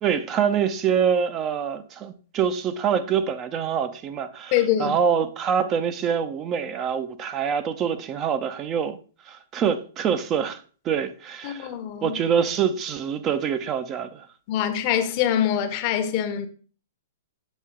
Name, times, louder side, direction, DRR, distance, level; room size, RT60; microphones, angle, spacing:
voice 1, 0.0-9.0 9.3-11.7 12.0-14.3, right 7 dB, 30° right, 0.5 m, -25 dB
voice 2, 4.5-5.0 11.4-12.2 14.5-16.5, left 10 dB, 45° left, 0.8 m, -24 dB
7.3 x 3.6 x 3.7 m
hypercardioid pair, 125°, 0 cm